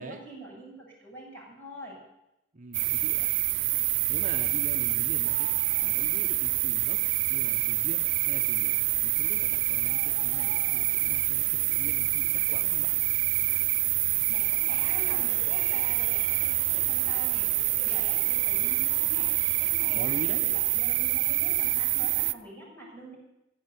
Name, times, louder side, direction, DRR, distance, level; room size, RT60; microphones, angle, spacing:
voice 1, 0.0-2.0 14.3-23.2, right 1 dB, 15° left, -4 dB, 7.7 m, -44 dB
voice 2, 2.5-3.3 4.1-5.5 5.8-7.0 7.3-13.0 19.9-20.4, right 2 dB, 45° right, 4 dB, 0.9 m, -42 dB
sound 1, 2.7-22.3, right 18 dB, 90° right, 0.5 m, -26 dB
sound 2, 14.7-19.7, equal, 40° left, 2.5 m, -49 dB
16.0 x 7.9 x 8.4 m, 0.89 s
head